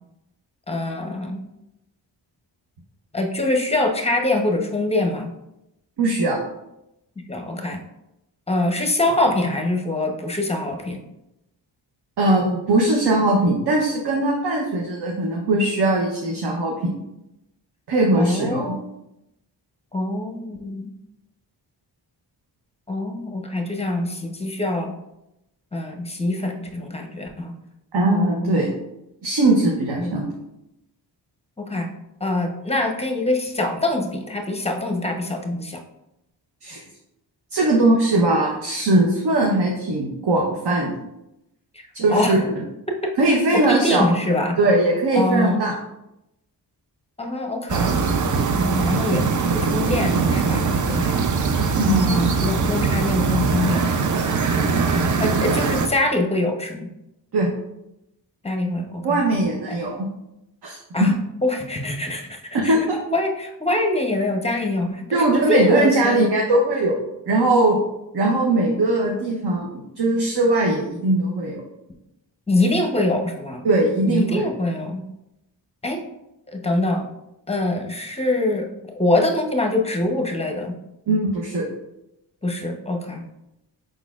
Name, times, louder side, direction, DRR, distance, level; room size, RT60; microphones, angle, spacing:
voice 1, 0.7-1.4 3.1-5.3 7.3-7.8 8.5-11.0 18.1-18.8 19.9-20.9 22.9-24.9 25.7-27.5 28.0-28.5 30.0-30.1 31.6-31.9 32.2-35.8 41.7-42.4 43.0-43.1 43.6-44.6 45.1-45.6 47.2-47.9 48.5-49.2 49.5-51.3 51.8-53.8 54.6-56.9 58.4-59.2 59.7-59.8 60.9-61.1 61.4-62.3 62.6-62.8 63.1-66.3 72.5-73.6 74.1-75.0 75.8-76.0 76.5-77.0 77.5-80.7 82.4-83.2, left 2 dB, 15° left, 2 dB, 0.8 m, -24 dB
voice 2, 6.0-6.4 12.2-16.9 17.9-18.8 27.9-28.7 29.2-30.3 36.6-36.8 37.5-40.9 41.9-42.6 43.2-44.1 44.6-45.7 51.8-52.5 57.3-57.5 59.0-60.1 60.6-61.1 62.5-63.0 65.1-67.0 67.3-67.8 68.1-71.6 73.6-74.5 81.1-81.7, right 2 dB, 60° right, -1 dB, 0.9 m, -20 dB
sound 1, 47.7-55.9, right 5 dB, 45° right, 0.5 m, -21 dB
5.3 x 4.0 x 2.4 m, 0.88 s
cardioid pair, 60°, 44 cm